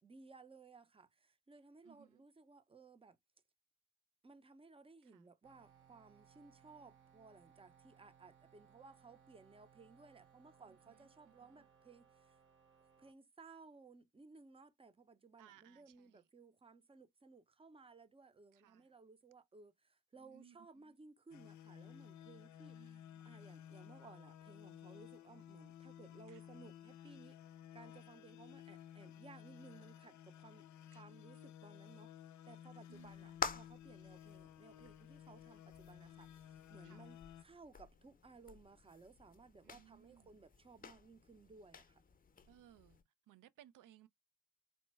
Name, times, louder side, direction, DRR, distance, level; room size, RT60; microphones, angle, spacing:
voice 1, 0.0-3.2 4.2-12.4 13.0-27.4 27.7-30.7 30.9-32.1 32.5-42.0, right 4 dB, 20° right, 0.6 m, -60 dB
voice 2, 1.8-2.2 5.1-5.2 11.2-11.7 15.4-16.2 18.5-18.8 20.2-20.9 22.7-23.6 30.9-31.0 32.9-33.3 36.8-37.1 39.6-40.3 42.5-43.0 43.3-44.1, right 11 dB, 80° right, 0.5 m, -64 dB
sound 1, 5.4-13.1, right 7 dB, 40° right, 1.0 m, -67 dB
sound 2, 21.3-37.4, left 10 dB, 65° left, 0.5 m, -55 dB
sound 3, 32.9-43.0, left 5 dB, 25° left, 0.7 m, -50 dB
4.3 x 2.1 x 3.1 m
cardioid pair, 85°, 31 cm